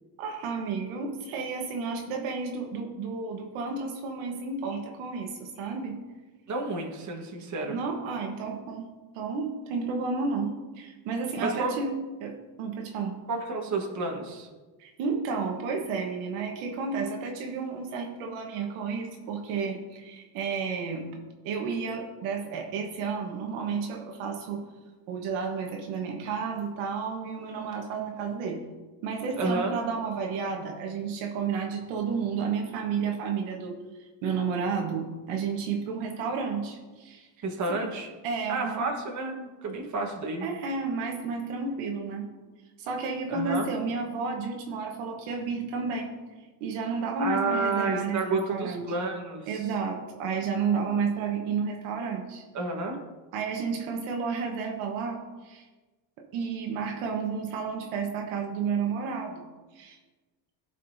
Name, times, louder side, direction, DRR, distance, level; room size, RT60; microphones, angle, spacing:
voice 1, 0.2-6.0 7.7-8.9 9.1-13.2 14.8-21.1 21.4-24.6 25.1-28.6 29.0-33.8 34.2-37.3 37.7-37.8 38.2-38.9 40.4-42.3 42.8-46.1 46.6-48.9 49.5-52.4 53.3-55.6 56.3-59.4 59.7-60.0, right 5 dB, 80° right, 2 dB, 1.4 m, -31 dB
voice 2, 6.5-7.8 11.4-11.7 13.3-14.5 29.4-29.7 37.4-38.1 38.5-40.5 43.3-43.7 47.2-49.6 52.5-53.0, right 3 dB, 35° right, 2 dB, 1.5 m, -30 dB
15.0 x 5.3 x 2.7 m, 1.2 s
cardioid pair, 125°, 49 cm